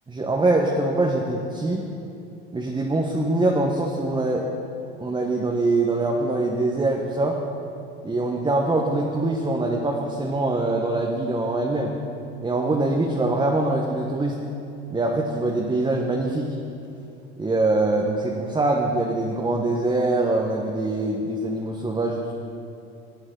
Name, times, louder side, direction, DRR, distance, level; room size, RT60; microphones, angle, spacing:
voice 1, 0.1-1.8 2.5-4.5 5.0-7.4 8.0-11.9 12.4-14.4 14.9-16.5 17.4-22.3, right 2 dB, 15° right, -1 dB, 1.2 m, -23 dB
18.5 x 8.7 x 3.9 m, 2.7 s
hypercardioid pair, 95°, 33 cm